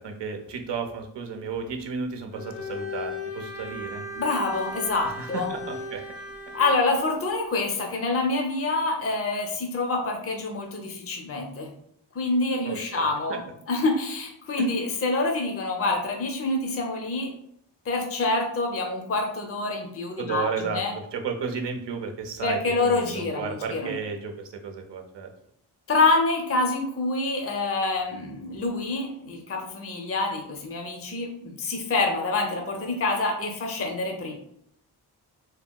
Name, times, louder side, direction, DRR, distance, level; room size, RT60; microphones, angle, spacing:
voice 1, 0.0-4.0 5.0-6.0 12.6-13.4 14.6-14.7 20.2-20.8 21.1-24.3 24.6-25.3, right 5 dB, 75° right, 4 dB, 0.7 m, -33 dB
Bowed string instrument, 2.3-6.8, left 2 dB, 75° left, 0.9 m, -37 dB
voice 2, 4.2-5.5 6.5-11.7 12.1-13.4 13.7-17.3 17.9-20.9 22.4-23.9 25.9-34.4, left 3 dB, 35° left, 2 dB, 0.6 m, -26 dB
2.9 x 2.8 x 2.3 m, 0.70 s
cardioid pair, 50°, 43 cm